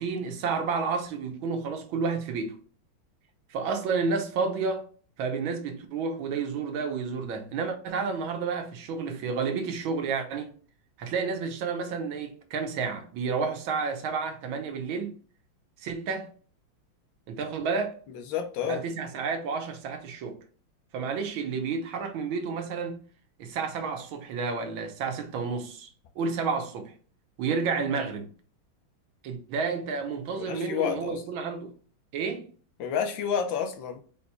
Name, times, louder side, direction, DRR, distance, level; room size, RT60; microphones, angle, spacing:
voice 1, 0.0-2.6 3.5-4.9 5.2-10.5 11.0-15.1 15.8-16.3 17.3-17.9 18.7-20.4 20.9-23.0 23.4-25.9 26.2-26.9 27.4-28.3 29.2-31.7 32.1-32.5, right 5 dB, 80° right, 1.7 m, -30 dB
voice 2, 18.1-18.8 30.3-31.2 32.8-34.0, left 8 dB, 70° left, 1.5 m, -30 dB
4.7 x 4.2 x 2.2 m
omnidirectional pair, 2.2 m